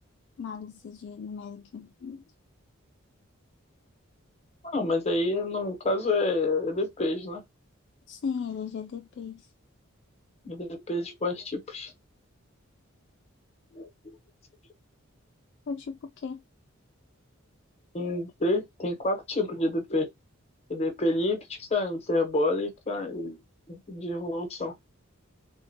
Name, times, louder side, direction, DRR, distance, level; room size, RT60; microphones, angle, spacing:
voice 1, 0.4-2.2 8.1-9.5 15.7-16.4, left 6 dB, 55° left, 0.3 m, -37 dB
voice 2, 4.6-7.4 10.4-11.9 13.7-14.2 17.9-20.1 20.7-23.4 23.7-24.7, left 2 dB, 30° left, 0.9 m, -28 dB
3.6 x 2.2 x 2.7 m
head